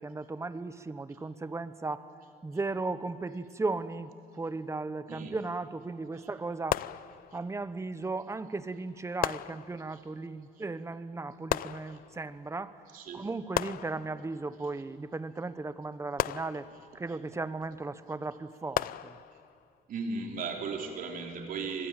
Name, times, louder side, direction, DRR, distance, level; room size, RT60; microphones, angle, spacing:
voice 1, 0.0-2.0 2.4-6.8 7.3-12.7 13.1-16.7 16.9-19.1, right 3 dB, 15° right, 13 dB, 1.0 m, -36 dB
sound 1, 6.7-7.6 9.2-10.1 11.5-12.4 13.5-14.5 16.2-17.1 18.7-19.6, left 13 dB, 60° left, 0.5 m, -35 dB
voice 2, 12.9-13.3 19.9-21.9, right 4 dB, 55° right, 2 dB, 3.8 m, -37 dB
25.5 x 21.5 x 9.0 m, 2.4 s
cardioid pair, 110°, 17 cm